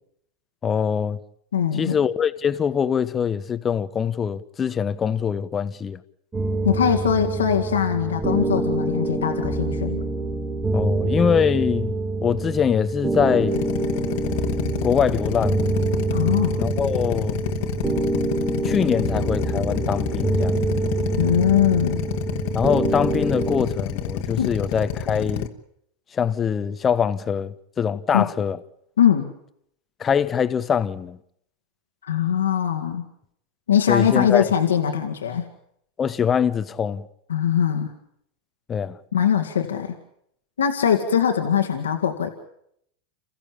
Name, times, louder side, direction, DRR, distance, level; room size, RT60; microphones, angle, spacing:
voice 1, 0.6-1.2 1.7-6.0 10.7-13.6 14.8-15.7 16.6-17.4 18.6-20.6 22.5-25.5 26.1-28.6 30.0-31.2 33.9-34.5 36.0-37.1 38.7-39.0, left 7 dB, 25° left, 1.1 m, -23 dB
voice 2, 1.5-2.0 6.6-10.0 16.1-16.6 21.2-22.0 24.4-24.5 28.1-28.3 29.0-29.3 32.0-33.1 33.7-35.5 37.3-37.9 39.1-39.9 40.6-42.3, left 9 dB, 90° left, 2.0 m, -21 dB
sound 1, 6.3-23.7, right 2 dB, 15° right, 4.5 m, -26 dB
Drill, 13.5-25.5, left 9 dB, 65° left, 1.7 m, -28 dB
28.5 x 15.0 x 8.8 m
hypercardioid pair, 100°, 0 cm